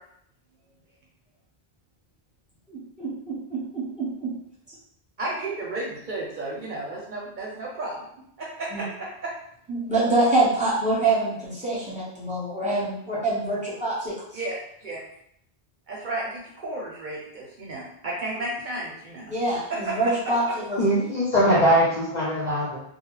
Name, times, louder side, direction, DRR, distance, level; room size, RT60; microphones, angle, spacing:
voice 1, 2.7-4.3 8.7-8.8 9.7-14.1 19.3-20.8, right 2 dB, 5° right, -9 dB, 1.0 m, -25 dB
voice 2, 5.2-8.0 8.4-9.3 14.3-14.6 14.8-15.0 15.9-19.3 19.7-20.0, right 2 dB, 55° right, -4 dB, 0.7 m, -33 dB
voice 3, 20.8-22.8, equal, 50° left, -6 dB, 0.7 m, -21 dB
2.3 x 2.3 x 3.0 m, 0.71 s
omnidirectional pair, 1.0 m